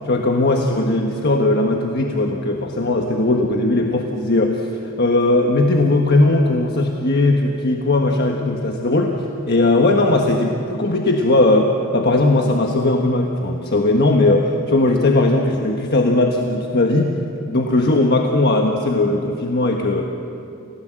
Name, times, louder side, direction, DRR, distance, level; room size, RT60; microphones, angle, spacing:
voice 1, 0.0-9.2 9.5-17.1 17.5-20.0, left 2 dB, 50° left, 2 dB, 1.3 m, -18 dB
29.5 x 16.5 x 7.7 m, 2.8 s
head